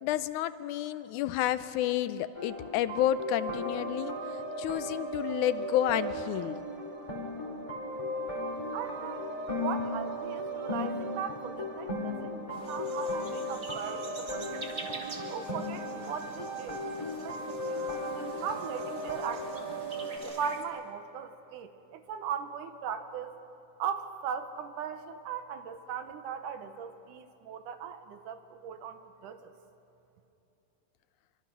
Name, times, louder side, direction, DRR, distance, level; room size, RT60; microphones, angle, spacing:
voice 1, 0.0-4.1 4.6-6.6, left 13 dB, 80° left, 14 dB, 2.0 m, -30 dB
sound 1, 2.3-20.2, equal, 10° left, 2.2 m, -36 dB
voice 2, 8.7-9.3 9.6-14.6 15.3-19.7 20.2-23.4 23.8-29.5, right 7 dB, 90° right, 8 dB, 2.6 m, -39 dB
sound 2, 12.5-20.6, right 3 dB, 30° right, 1.9 m, -46 dB
25.0 x 24.5 x 6.2 m, 2.8 s
omnidirectional pair, 3.6 m